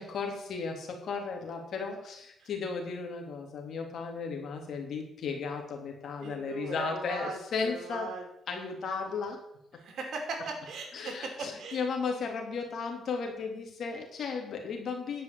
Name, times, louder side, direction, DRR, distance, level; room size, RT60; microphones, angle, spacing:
voice 1, 0.0-8.1 8.5-9.4 10.9-15.2, left 5 dB, 60° left, 2 dB, 2.8 m, -35 dB
voice 2, 6.2-8.2 8.5-8.7 9.8-11.8, right 3 dB, 65° right, 3 dB, 3.0 m, -39 dB
10.5 x 5.5 x 8.4 m, 0.77 s
cardioid pair, 90°, 0 cm